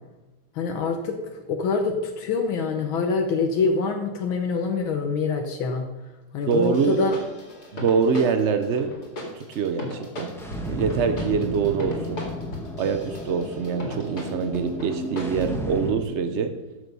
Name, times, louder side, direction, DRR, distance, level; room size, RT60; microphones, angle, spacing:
voice 1, 0.6-1.2 1.5-5.9 6.3-7.2, left 4 dB, 75° left, 5 dB, 1.7 m, -25 dB
sound 1, 6.5-15.6, left 1 dB, 50° left, 2.7 m, -38 dB
voice 2, 6.5-7.0 7.7-8.9 9.3-10.4 10.7-12.2 12.8-16.5, right 6 dB, 80° right, 8 dB, 0.6 m, -24 dB
sound 2, 10.3-15.9, equal, ahead, 0.8 m, -33 dB
13.0 x 6.8 x 5.4 m, 1.1 s
omnidirectional pair, 2.3 m